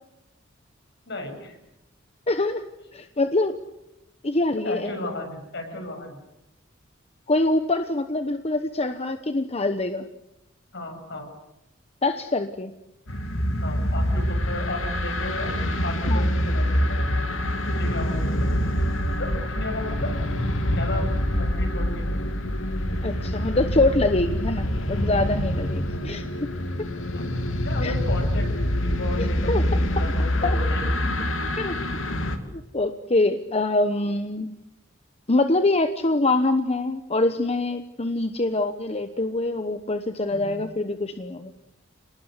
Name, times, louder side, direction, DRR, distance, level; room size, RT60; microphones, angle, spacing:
voice 1, 1.1-1.6 4.6-6.2 10.7-11.3 13.6-15.5 15.8-17.4 17.8-18.6 19.2-20.1 20.7-22.9 27.1-27.4 27.6-28.5 28.8-29.7 29.9-31.3 40.3-40.6, left 2 dB, 60° left, 4 dB, 7.5 m, -34 dB
voice 2, 2.3-2.6 2.9-3.5 4.2-4.9 7.3-10.1 12.0-12.7 16.1-16.3 23.0-26.2 26.8-26.9 27.8-27.9 29.2-29.6 30.4-30.6 31.6-31.7 32.5-34.5 35.3-41.5, left 2 dB, 30° left, 9 dB, 1.1 m, -24 dB
sound 1, 13.1-32.4, equal, 90° left, 2.6 m, -25 dB
30.0 x 20.0 x 8.3 m, 0.88 s
head